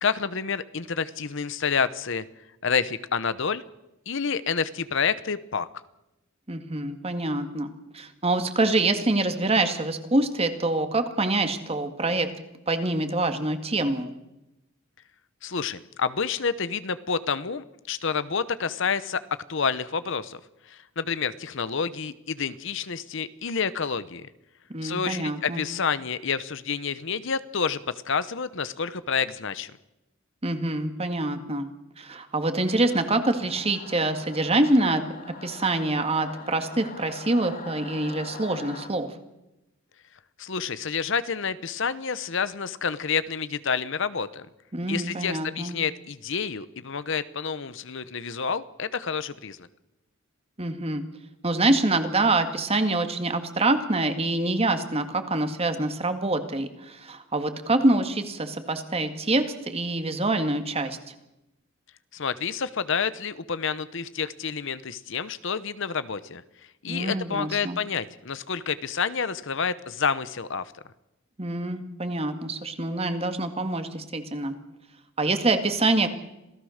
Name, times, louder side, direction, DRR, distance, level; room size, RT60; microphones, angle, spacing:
voice 1, 0.0-2.2 2.6-3.6 4.1-5.7 15.4-19.2 19.5-20.4 20.7-24.3 24.8-29.7 40.4-44.5 44.9-49.7 62.1-66.4 66.8-70.7, left 6 dB, 65° left, 15 dB, 0.9 m, -29 dB
voice 2, 6.5-12.3 12.7-14.1 24.7-25.6 30.4-31.7 32.0-35.0 35.3-39.1 44.7-45.8 50.6-51.0 51.4-61.1 66.9-67.8 71.4-74.6 75.2-76.1, right 2 dB, 30° right, 8 dB, 2.0 m, -25 dB
Singing / Musical instrument, 32.6-38.9, left 3 dB, 45° left, 2.6 m, -43 dB
27.0 x 17.0 x 6.5 m, 0.93 s
head